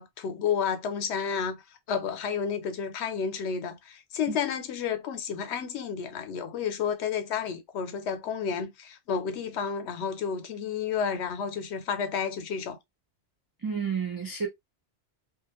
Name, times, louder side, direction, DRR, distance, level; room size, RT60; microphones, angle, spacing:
voice 1, 0.0-1.6 1.9-12.8, left 7 dB, 85° left, 0.9 m, -31 dB
voice 2, 13.6-14.5, right 6 dB, 35° right, 0.3 m, -30 dB
2.4 x 2.4 x 2.8 m
omnidirectional pair, 1.1 m